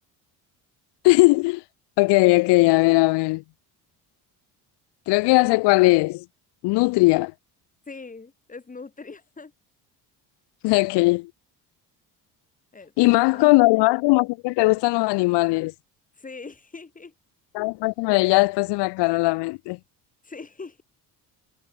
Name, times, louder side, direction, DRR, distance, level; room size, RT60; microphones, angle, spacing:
voice 1, 1.0-1.6 2.0-3.4 5.1-6.2 6.6-7.3 10.6-11.3 13.0-15.7 17.5-19.8, left 24 dB, 85° left, 0.6 m, -19 dB
voice 2, 7.9-9.5 12.7-13.7 16.2-17.1 20.2-20.8, left 4 dB, 20° left, 2.8 m, -41 dB
cardioid pair, 110°, 40 cm